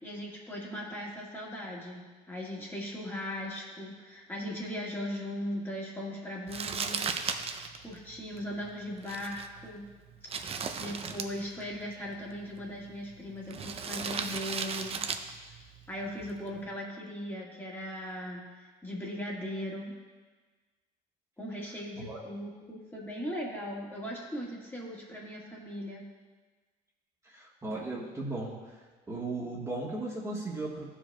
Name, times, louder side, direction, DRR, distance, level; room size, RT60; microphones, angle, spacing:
voice 1, 0.0-7.2 7.8-9.9 10.4-10.5 10.8-15.0 15.9-19.9 21.4-26.0, equal, 10° left, -4 dB, 1.6 m, -38 dB
Crumpling crinkling, 6.5-16.6, right 5 dB, 35° right, 0.5 m, -38 dB
voice 2, 27.2-28.8 29.1-30.8, right 2 dB, 20° right, -6 dB, 1.3 m, -36 dB
14.5 x 5.1 x 2.3 m, 1.4 s
cardioid pair, 110°, 17 cm